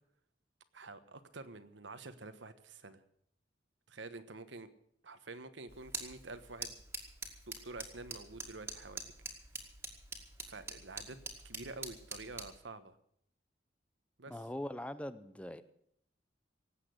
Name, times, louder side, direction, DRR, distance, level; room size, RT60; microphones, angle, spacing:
voice 1, 0.7-3.0 3.9-4.7 5.0-6.7 7.5-9.1 10.4-13.0 14.2-14.4, right 3 dB, 80° right, 10 dB, 1.2 m, -48 dB
sound 1, 5.7-12.6, right 3 dB, 15° right, 2.1 m, -46 dB
voice 2, 14.3-15.6, left 1 dB, 5° left, 12 dB, 0.6 m, -41 dB
18.5 x 8.4 x 7.9 m, 0.69 s
head